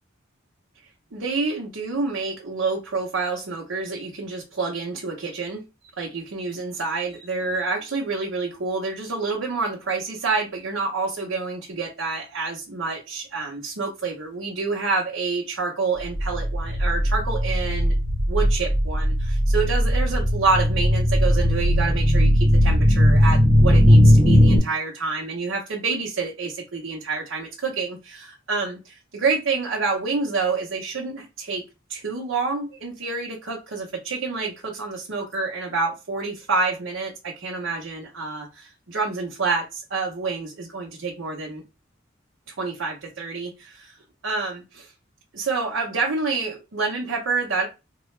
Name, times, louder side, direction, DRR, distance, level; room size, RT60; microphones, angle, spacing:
voice 1, 1.1-5.6 6.0-17.9 18.3-31.6 31.9-41.6 42.5-44.0 44.2-44.9 45.3-47.7, right 4 dB, 80° right, 0.8 m, -28 dB
sound 1, 16.1-24.6, equal, 5° left, 0.9 m, -18 dB
3.9 x 2.2 x 3.2 m
head